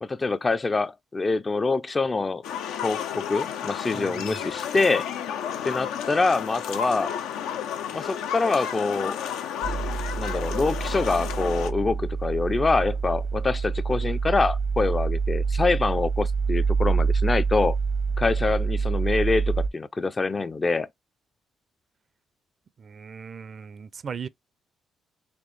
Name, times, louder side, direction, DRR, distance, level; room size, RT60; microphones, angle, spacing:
voice 1, 0.0-2.4 2.8-5.1 5.6-7.1 7.9-9.2 10.2-17.8 18.2-20.9, left 3 dB, 30° left, 0.4 m, -25 dB
sound 1, 2.4-11.7, left 9 dB, 80° left, 0.5 m, -32 dB
voice 2, 3.9-4.4 22.8-24.3, right 6 dB, 50° right, 0.5 m, -38 dB
sound 2, 9.6-19.7, right 5 dB, 75° right, 0.9 m, -26 dB
4.3 x 2.9 x 3.2 m
supercardioid pair, 60°, 0 cm